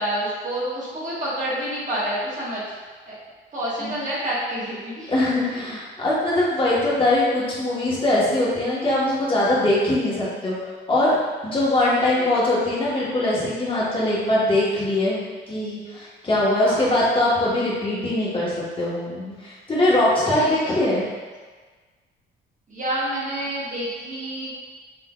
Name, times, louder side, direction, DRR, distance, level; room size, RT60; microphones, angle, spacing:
voice 1, 0.0-2.6 3.1-3.2 3.5-5.1 5.5-5.6 12.0-12.3 16.6-16.9 20.3-21.0 22.7-24.5, right 1 dB, 40° right, -7 dB, 1.2 m, -28 dB
voice 2, 5.1-10.6 10.9-11.1 11.4-21.0, left 1 dB, 25° left, -7 dB, 1.2 m, -22 dB
3.8 x 3.2 x 2.3 m, 1.4 s
cardioid pair, 90°, 20 cm